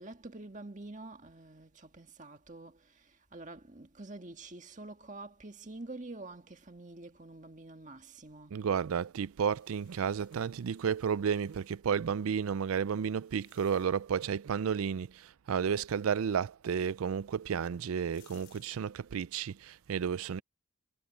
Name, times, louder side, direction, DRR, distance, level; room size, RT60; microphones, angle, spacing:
voice 1, 0.0-8.6, right 2 dB, 35° right, 1.7 m, -47 dB
voice 2, 8.5-20.4, right 7 dB, 90° right, 0.4 m, -32 dB
sound 1, 9.5-11.8 12.6-14.2 17.2-17.3 17.8-18.7, left 12 dB, 50° left, 4.5 m, -65 dB
head